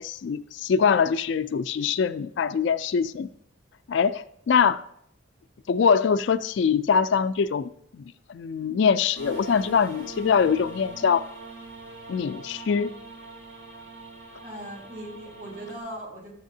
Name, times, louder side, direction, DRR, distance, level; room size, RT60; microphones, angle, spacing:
voice 1, 0.0-3.3 3.9-4.8 5.7-8.0 8.3-11.3 12.1-12.9, left 6 dB, 60° left, 0.3 m, -23 dB
sound 1, 9.2-15.8, right 3 dB, 70° right, 3.1 m, -43 dB
voice 2, 14.4-16.3, right 1 dB, 45° right, 2.8 m, -39 dB
11.5 x 7.3 x 2.7 m
head